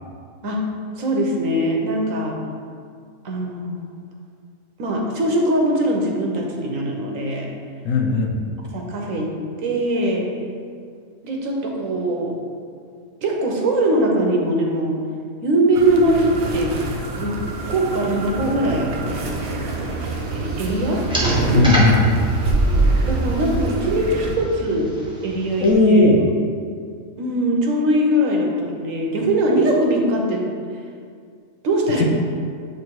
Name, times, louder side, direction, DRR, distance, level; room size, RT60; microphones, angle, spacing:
voice 1, 1.0-2.4 3.2-4.0 4.8-7.5 8.7-9.3 9.6-10.3 11.2-12.4 13.2-15.0 15.4-16.7 17.2-17.4 17.7-21.0 23.1-24.9 25.2-26.1 27.2-30.4 31.6-32.0, right 1 dB, 75° right, 0 dB, 1.3 m, -21 dB
voice 2, 7.8-8.4 21.5-22.0 25.6-26.3 32.0-32.1, left 2 dB, 75° left, 1 dB, 1.1 m, -16 dB
sound 1, 15.7-24.3, right 2 dB, 60° right, 0.9 m, -24 dB
sound 2, 20.0-25.7, right 1 dB, 5° right, 0.9 m, -30 dB
7.9 x 3.0 x 4.6 m, 2.2 s
omnidirectional pair, 1.4 m